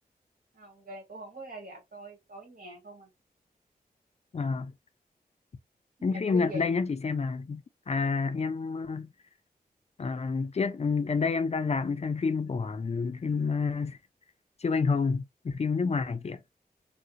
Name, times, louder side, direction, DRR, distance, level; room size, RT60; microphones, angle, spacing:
voice 1, 0.5-3.1 6.0-6.7, right 1 dB, 75° right, 1.8 m, -43 dB
voice 2, 4.3-4.7 6.0-7.6 7.9-9.1 10.0-14.0 14.6-16.4, left 4 dB, 45° left, 0.4 m, -29 dB
3.4 x 2.4 x 2.8 m
wide cardioid pair, 80°, 16 cm